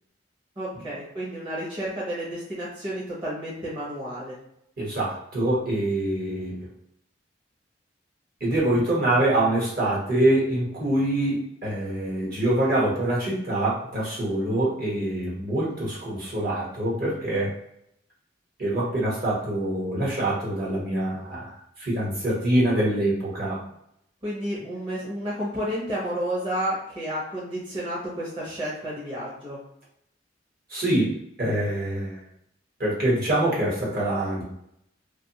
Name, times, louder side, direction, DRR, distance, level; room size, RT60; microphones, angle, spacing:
voice 1, 0.6-4.3 24.2-29.6, equal, 30° right, -7 dB, 0.8 m, -31 dB
voice 2, 4.8-6.7 8.4-17.5 18.6-23.6 30.7-32.2 32.8-34.4, right 1 dB, 55° right, -6 dB, 1.2 m, -25 dB
2.6 x 2.4 x 2.9 m, 0.76 s
head